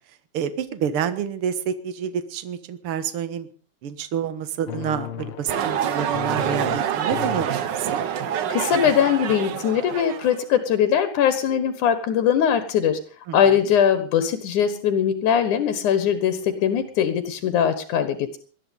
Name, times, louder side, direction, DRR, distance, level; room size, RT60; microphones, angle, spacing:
voice 1, 0.3-3.5 3.8-8.0 13.3-13.7, right 8 dB, 55° right, 12 dB, 2.1 m, -28 dB
sound 1, 4.7-7.5 7.9-8.2 8.6-8.7, left 9 dB, 65° left, 1.5 m, -35 dB
sound 2, 5.5-10.4, right 9 dB, 75° right, 1.0 m, -26 dB
voice 2, 8.5-13.0 13.3-18.4, left 8 dB, 85° left, 10 dB, 3.0 m, -21 dB
20.0 x 13.0 x 5.4 m, 0.39 s
omnidirectional pair, 3.4 m